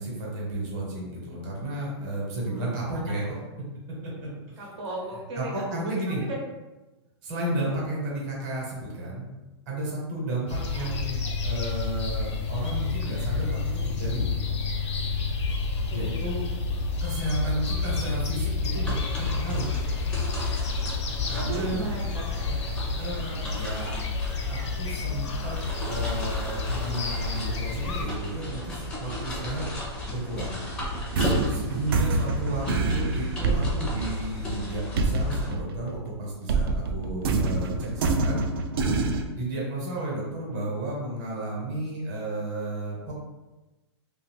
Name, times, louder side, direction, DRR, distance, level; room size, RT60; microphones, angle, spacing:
voice 1, 0.0-3.2 4.0-4.1 4.5-4.6 5.3-6.2 7.2-14.3 15.9-16.4 17.0-19.8 21.3-21.8 23.0-23.9 24.5-25.6 25.8-29.6 30.1-30.6 31.5-38.4 39.3-43.1, right 1 dB, 35° right, -4 dB, 1.0 m, -33 dB
voice 2, 2.5-3.4 4.6-5.5 5.8-5.9 6.2-6.4 7.6-7.9 10.6-10.9 15.7-16.2 20.2-20.4 21.0-22.6 32.5-33.0, right 2 dB, 75° right, -2 dB, 0.9 m, -38 dB
sound 1, 10.5-28.0, left 4 dB, 85° left, 0.7 m, -30 dB
sound 2, 18.8-35.5, left 1 dB, 5° left, 0.5 m, -35 dB
sound 3, 30.8-36.1 36.5-39.2, right 3 dB, 55° right, 0.4 m, -26 dB
2.6 x 2.3 x 3.3 m, 1.1 s
hypercardioid pair, 165°, 15 cm